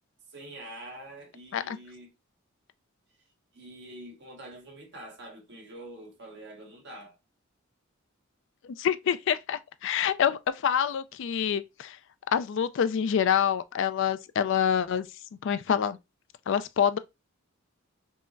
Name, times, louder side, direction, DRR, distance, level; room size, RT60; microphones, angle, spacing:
voice 1, 0.3-2.1 3.5-7.2, right 1 dB, 60° right, 1.3 m, -45 dB
voice 2, 8.6-12.0 12.3-15.1 15.4-16.0 16.5-17.0, left 8 dB, 65° left, 0.3 m, -26 dB
5.5 x 2.0 x 2.5 m
head